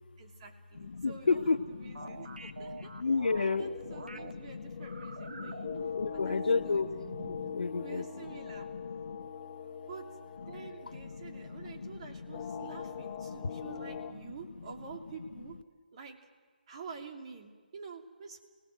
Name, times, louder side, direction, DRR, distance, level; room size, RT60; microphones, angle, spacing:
voice 1, 0.2-2.9 3.4-5.7 6.1-6.9 7.8-8.7 9.9-10.1 10.5-15.6 15.9-16.2 16.7-18.4, right 5 dB, 35° right, 3 dB, 3.0 m, -48 dB
voice 2, 0.9-1.6 1.8-2.4 2.7-3.7 4.1-8.0 8.7-9.3 10.5-10.7 11.2-11.9 12.5-12.6 13.2-13.6, left 4 dB, 65° left, 9 dB, 1.0 m, -33 dB
sound 1, 1.9-4.3 4.8-6.7 7.0-7.6, right 3 dB, 75° right, 1.6 m, -46 dB
sound 2, 3.3-14.1, left 7 dB, 25° left, 1.5 m, -43 dB
29.5 x 18.0 x 7.9 m, 1.5 s
figure-of-eight pair, 150°, 5 cm